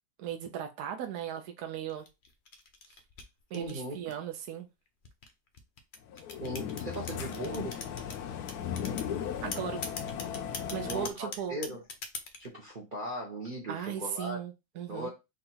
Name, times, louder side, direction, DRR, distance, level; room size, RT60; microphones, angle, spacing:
voice 1, 0.2-2.1 3.5-4.7 9.4-9.8 10.7-11.6 13.7-15.1, right 9 dB, 75° right, 5 dB, 1.1 m, -37 dB
sound 1, 1.9-4.4 5.0-8.2 8.5-9.1 9.5-12.5, left 4 dB, 55° left, 0.5 m, -41 dB
voice 2, 3.5-4.0 6.4-7.8 10.8-11.8 12.4-14.4 14.9-15.1, right 1 dB, 40° right, -3 dB, 0.9 m, -38 dB
sound 2, 6.1-11.1, left 8 dB, 75° left, 1.1 m, -37 dB
3.8 x 2.6 x 4.2 m, 0.24 s
omnidirectional pair, 1.7 m